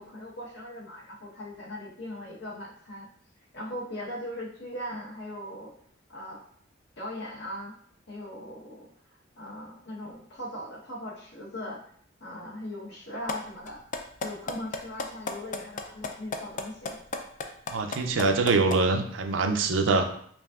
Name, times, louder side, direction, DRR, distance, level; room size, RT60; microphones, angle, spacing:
voice 1, 0.0-3.1 3.5-5.7 6.1-6.4 7.0-7.7 8.1-8.9 9.4-11.8 12.2-13.8 14.2-17.0, left 1 dB, 65° left, -3 dB, 1.2 m, -39 dB
sound 1, 13.3-13.4 13.7-18.8, left 3 dB, 45° left, 0.4 m, -32 dB
voice 2, 17.7-20.0, right 3 dB, 80° right, 6 dB, 0.5 m, -24 dB
5.3 x 2.6 x 2.4 m, 0.62 s
head